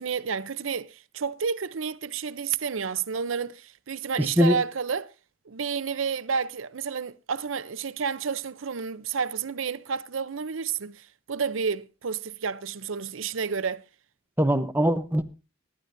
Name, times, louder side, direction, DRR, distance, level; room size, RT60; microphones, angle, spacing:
voice 1, 0.0-5.1 5.5-13.8, right 6 dB, 80° right, 0.6 m, -30 dB
voice 2, 4.2-4.6 14.4-15.2, equal, 10° right, 0.8 m, -22 dB
25.0 x 11.5 x 2.6 m
head